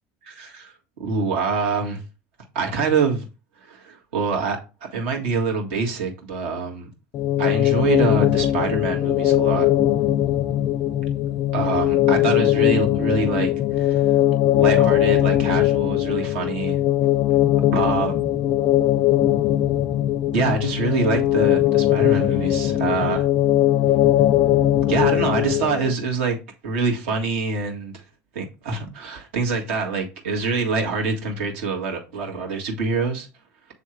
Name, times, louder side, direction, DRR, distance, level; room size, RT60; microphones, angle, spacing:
voice 1, 0.2-0.7 1.0-2.0 2.5-3.2 3.6-6.9 7.4-9.7 11.5-14.1 14.5-16.8 17.7-18.1 20.3-23.3 24.9-26.4 26.6-28.0 28.3-33.3, right 4 dB, 90° right, 1.9 m, -25 dB
sound 1, 7.1-25.9, left 13 dB, 50° left, 0.4 m, -20 dB
8.3 x 3.5 x 4.5 m
supercardioid pair, 105°, 6 cm